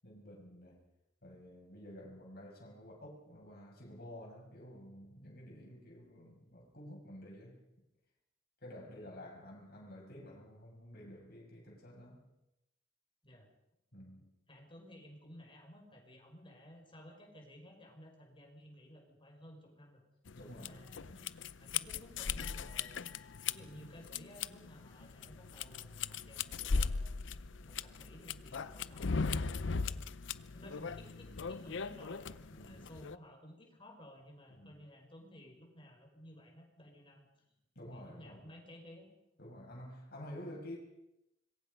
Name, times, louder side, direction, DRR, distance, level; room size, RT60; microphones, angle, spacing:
voice 1, 0.0-0.8 1.2-7.6 8.6-12.3 13.9-14.3 20.3-21.3 32.5-32.9 34.5-34.8 37.7-38.5 39.4-40.8, left 1 dB, 55° left, -1 dB, 6.7 m, -51 dB
voice 2, 8.8-9.3 13.2-13.5 14.5-20.0 20.5-21.1 21.6-23.1 23.5-27.2 27.6-30.1 30.5-37.3 37.9-39.1, equal, 30° left, 2 dB, 5.6 m, -55 dB
sound 1, 20.3-33.2, left 5 dB, 90° left, 0.7 m, -39 dB
sound 2, 25.2-31.4, equal, 5° right, 4.0 m, -60 dB
26.0 x 22.5 x 5.4 m, 0.88 s
head